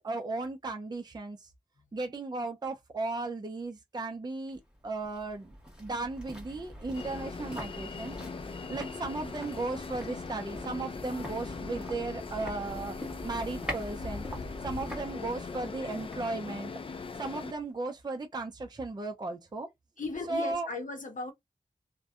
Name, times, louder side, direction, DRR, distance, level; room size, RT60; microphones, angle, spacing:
voice 1, 0.0-1.5 1.9-8.1 8.5-13.0 13.2-14.3 14.6-16.7 17.2-19.7 20.3-20.7, right 3 dB, 30° right, 0.5 m, -36 dB
sound 1, 4.5-17.6 17.9-18.0, equal, 5° right, 1.3 m, -44 dB
sound 2, 6.9-17.5, left 4 dB, 40° left, 0.3 m, -40 dB
voice 2, 20.0-21.3, left 3 dB, 65° left, 0.8 m, -36 dB
2.6 x 2.1 x 2.3 m
wide cardioid pair, 80°, 14 cm